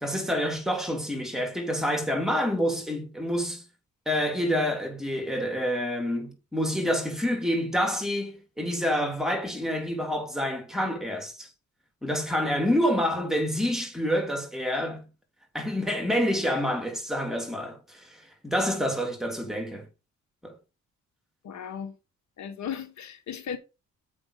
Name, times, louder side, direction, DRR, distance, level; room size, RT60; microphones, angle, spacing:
voice 1, 0.0-3.6 4.0-11.5 12.0-15.1 15.5-18.2 18.4-19.9 20.4-20.6, equal, ahead, 3.1 m, -27 dB
voice 2, 21.4-21.9 22.4-23.6, left 8 dB, 65° left, 1.5 m, -36 dB
7.5 x 5.8 x 5.0 m
cardioid pair, 90°, 30 cm